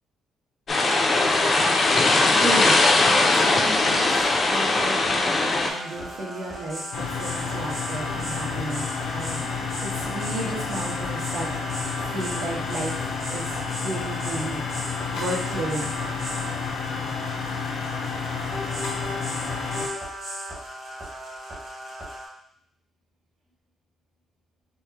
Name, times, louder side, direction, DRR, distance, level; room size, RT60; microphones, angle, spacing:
sound 1, 0.7-5.7, left 2 dB, 35° left, 0.4 m, -20 dB
voice 1, 2.4-2.8 3.3-11.5 12.0-13.0 13.3-13.5 13.8-14.6 15.1-15.9, right 2 dB, 80° right, -4 dB, 1.2 m, -33 dB
sound 2, 5.5-22.3, equal, 35° right, 1.1 m, -36 dB
sound 3, 6.9-19.9, left 5 dB, 90° left, 0.6 m, -31 dB
5.0 x 2.1 x 2.8 m, 0.65 s
cardioid pair, 175°, 0 cm